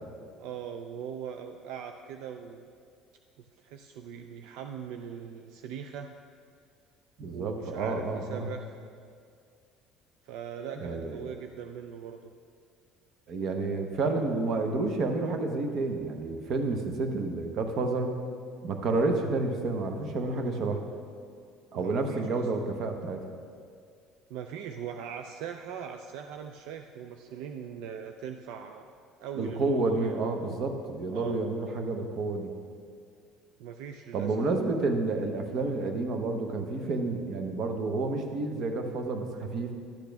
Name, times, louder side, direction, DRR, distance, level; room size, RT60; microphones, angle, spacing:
voice 1, 0.4-2.7 3.6-6.1 7.3-8.8 10.2-12.3 21.7-22.7 24.3-28.9 29.2-30.2 31.1-31.4 33.6-34.3, right 8 dB, 75° right, 6 dB, 0.4 m, -40 dB
voice 2, 7.2-8.5 10.7-11.3 13.3-18.1 18.6-20.8 21.7-23.2 29.4-32.5 34.1-39.7, right 3 dB, 45° right, 5 dB, 0.9 m, -30 dB
11.5 x 8.3 x 3.4 m, 2.2 s
cardioid pair, 155°, 0 cm